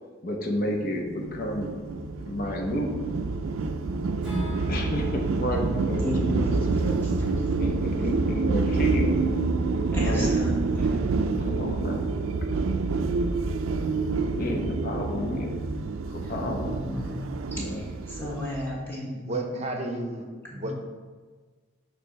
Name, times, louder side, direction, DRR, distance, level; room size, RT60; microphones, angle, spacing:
voice 1, 0.2-1.8 2.2-3.0 4.7-7.0 7.6-9.2 10.0-10.3 11.4-12.1 14.3-15.6 15.9-16.8 17.5-17.8, equal, 45° left, 2 dB, 0.8 m, -31 dB
sound 1, 0.5-15.9, left 1 dB, 80° left, 0.7 m, -42 dB
sound 2, 1.2-18.6, right 3 dB, 85° right, 0.4 m, -27 dB
Acoustic guitar / Strum, 4.2-8.3, right 1 dB, 5° right, 1.3 m, -41 dB
voice 2, 6.0-6.5 7.0-7.3 7.9-8.0 9.7-11.2 16.2-17.2 17.5-19.6 20.5-20.7, left 1 dB, 10° left, -6 dB, 1.4 m, -35 dB
voice 3, 19.3-20.2 20.5-20.7, right 2 dB, 35° right, 3 dB, 0.7 m, -31 dB
6.6 x 3.3 x 5.1 m, 1.5 s
head